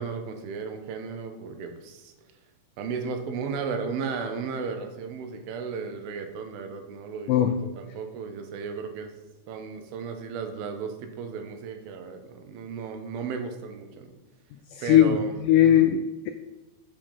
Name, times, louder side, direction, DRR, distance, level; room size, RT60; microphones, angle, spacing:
voice 1, 0.0-2.1 2.8-9.1 9.5-14.2 14.8-15.3 15.6-15.9, right 5 dB, 85° right, 6 dB, 2.7 m, -35 dB
voice 2, 14.7-16.3, left 11 dB, 90° left, 8 dB, 1.8 m, -20 dB
7.6 x 5.3 x 5.3 m, 1.0 s
omnidirectional pair, 4.2 m